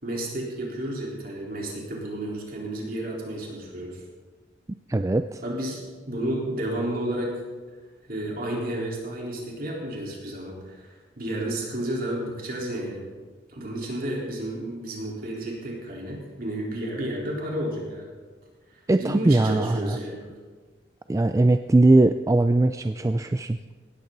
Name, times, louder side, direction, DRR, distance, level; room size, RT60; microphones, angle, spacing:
voice 1, 0.0-4.0 5.4-7.3 8.1-13.1 13.5-18.1 18.7-20.3, right 1 dB, 55° right, -3 dB, 4.1 m, -31 dB
voice 2, 4.9-5.4 18.9-20.0 21.1-23.6, right 2 dB, 15° right, 9 dB, 0.3 m, -20 dB
18.0 x 14.0 x 4.0 m, 1.4 s
head